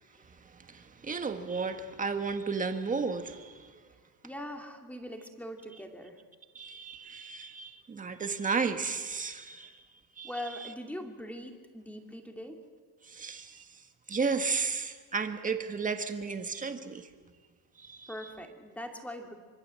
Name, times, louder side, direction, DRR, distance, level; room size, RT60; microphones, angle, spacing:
voice 1, 0.7-3.7 6.5-9.7 10.2-10.3 13.1-13.6 14.1-17.1 17.8-18.1, right 5 dB, 15° right, 7 dB, 1.7 m, -33 dB
voice 2, 4.2-6.2 10.2-12.6 18.1-19.3, left 1 dB, 5° left, 3 dB, 2.5 m, -41 dB
25.0 x 24.5 x 7.7 m, 1.5 s
cardioid pair, 150°, 46 cm